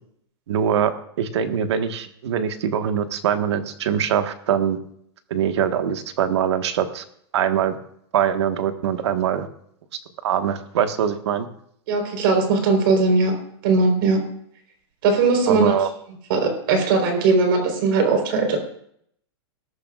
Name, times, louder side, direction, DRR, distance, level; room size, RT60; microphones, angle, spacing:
voice 1, 0.5-4.8 5.3-7.0 7.3-7.8 8.1-9.5 10.2-11.5 15.5-15.9, right 8 dB, 70° right, 7 dB, 1.5 m, -23 dB
voice 2, 11.9-13.4 13.6-14.2 15.0-15.7 16.3-18.6, right 3 dB, 50° right, 4 dB, 4.3 m, -19 dB
20.0 x 13.5 x 2.5 m, 0.68 s
supercardioid pair, 160°, 15 cm